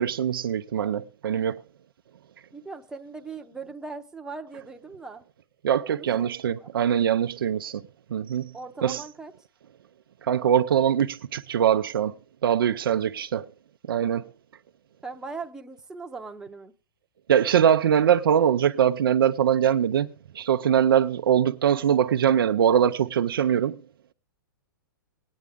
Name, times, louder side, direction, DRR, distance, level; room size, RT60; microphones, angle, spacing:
voice 1, 0.0-1.6 5.6-7.8 8.1-8.5 8.8-9.0 10.3-12.1 12.4-13.4 13.9-14.2 17.3-23.8, right 9 dB, 80° right, 0.6 m, -22 dB
voice 2, 2.5-5.2 5.9-6.7 8.5-9.3 12.9-13.4 15.0-16.7, right 4 dB, 5° right, 0.8 m, -40 dB
18.0 x 9.5 x 3.6 m
hypercardioid pair, 155°, 12 cm